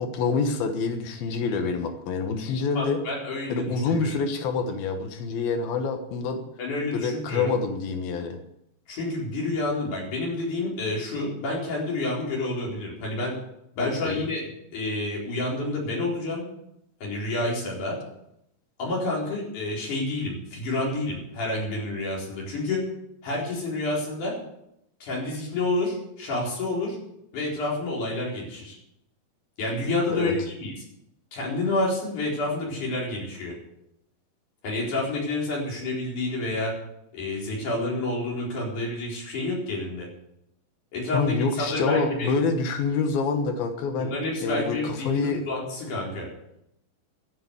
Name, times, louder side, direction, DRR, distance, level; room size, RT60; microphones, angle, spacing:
voice 1, 0.0-3.0 3.5-6.4 6.9-8.4 13.8-14.2 30.1-30.3 41.1-44.2 44.4-45.4, left 4 dB, 90° left, 6 dB, 3.2 m, -27 dB
voice 2, 2.8-4.2 6.6-7.5 8.9-13.4 13.8-14.4 14.7-16.4 17.0-18.0 18.8-22.8 23.2-24.3 25.0-27.0 27.3-28.8 29.6-30.7 31.3-33.6 34.6-36.8 37.1-40.1 40.9-42.3 44.0-46.3, left 2 dB, 60° left, -3 dB, 5.6 m, -29 dB
12.5 x 8.8 x 8.1 m, 0.79 s
omnidirectional pair, 4.1 m